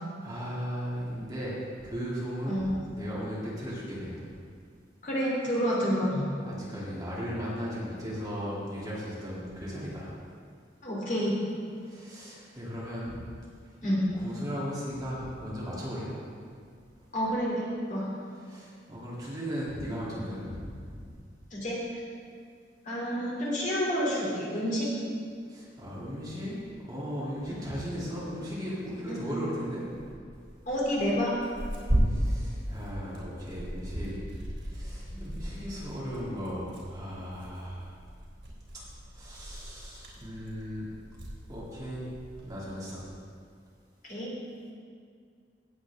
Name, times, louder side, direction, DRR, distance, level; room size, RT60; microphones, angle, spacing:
voice 1, 0.2-4.2 6.4-10.1 11.8-13.2 14.2-16.1 18.4-21.1 25.5-26.6 26.8-29.8 32.1-34.2 34.6-37.9 39.1-40.9 41.5-42.0 42.4-43.0, equal, 20° right, -8 dB, 2.9 m, -37 dB
voice 2, 5.0-6.3 10.8-11.4 13.8-14.1 17.1-18.0 21.5-21.8 22.8-24.9 27.5-27.6 29.1-29.3 30.7-31.4 35.1-35.2 44.0-44.3, equal, 45° left, -5 dB, 3.0 m, -29 dB
Tearing, 29.9-42.5, equal, 85° right, 3.4 m, -35 dB
18.0 x 7.8 x 3.6 m, 2.1 s
head